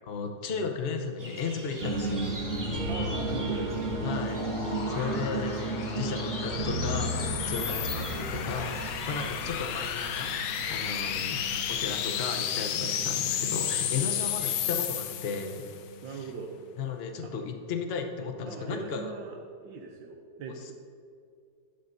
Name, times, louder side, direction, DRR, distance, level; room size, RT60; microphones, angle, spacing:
voice 1, 0.1-2.2 4.0-4.5 4.9-5.5 5.9-15.6 16.1-16.3 16.8-19.1 20.5-20.7, left 5 dB, 45° left, 4 dB, 0.9 m, -35 dB
sound 1, 1.2-14.7, right 1 dB, 10° right, 1.2 m, -45 dB
sound 2, 1.8-16.9, right 2 dB, 45° right, 1.6 m, -35 dB
voice 2, 2.9-3.8 4.9-5.2 7.6-7.7 9.1-9.3 16.0-16.5 17.2-17.3 18.4-19.4 19.6-20.7, right 5 dB, 90° right, 1 dB, 1.5 m, -40 dB
sound 3, 3.5-15.8, left 10 dB, 80° left, 1.3 m, -33 dB
11.5 x 11.0 x 2.7 m, 2.4 s
omnidirectional pair, 2.0 m